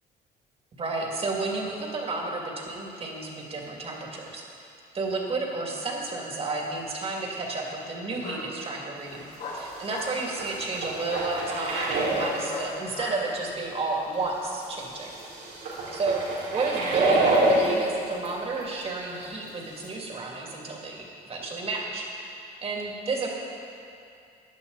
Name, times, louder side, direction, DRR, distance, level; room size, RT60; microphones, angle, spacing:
voice 1, 0.8-9.2 9.5-15.1 15.9-22.3 22.6-23.4, right 3 dB, 35° right, -1 dB, 2.7 m, -32 dB
Bark, 6.0-6.7 8.2-8.4 9.4-10.1 11.1-11.3 11.7-11.9 12.5-13.2, left 3 dB, 65° left, 3.7 m, -37 dB
sound 1, 9.1-9.2 9.6-12.5 13.3-13.4 14.6-18.3 18.6-18.8 19.1-19.2 19.8-19.9, right 2 dB, 90° right, 3.6 m, -27 dB
16.5 x 10.5 x 4.1 m, 2.6 s
cardioid pair, 110°, 17 cm